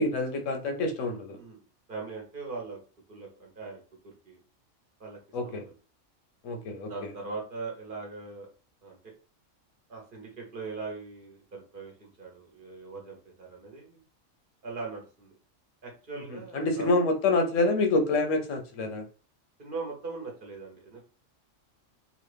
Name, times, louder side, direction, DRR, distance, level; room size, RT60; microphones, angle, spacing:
voice 1, 0.0-1.4 5.3-5.6 6.4-6.9 16.5-19.0, left 2 dB, 80° left, 1.0 m, -27 dB
voice 2, 1.9-2.8 3.1-4.4 5.0-5.2 5.4-5.7 6.8-8.5 8.8-9.1 9.9-14.0 14.6-15.3 15.8-16.9 19.6-21.0, right 4 dB, 45° right, 1.0 m, -40 dB
3.0 x 2.4 x 3.3 m
omnidirectional pair, 1.3 m